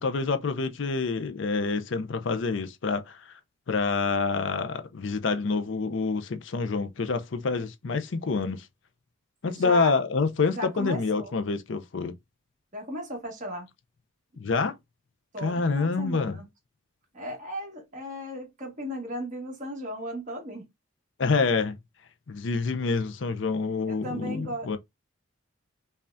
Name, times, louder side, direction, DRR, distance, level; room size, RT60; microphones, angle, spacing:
voice 1, 0.0-3.3 3.7-8.7 9.4-12.1 14.4-14.8 15.4-16.4 21.2-21.8 22.3-24.8, left 4 dB, 65° left, 0.5 m, -27 dB
voice 2, 9.4-9.9 10.5-11.3 12.7-13.7 15.3-16.4 17.1-20.7 23.9-24.7, equal, 40° right, 1.7 m, -36 dB
5.4 x 2.3 x 2.5 m
head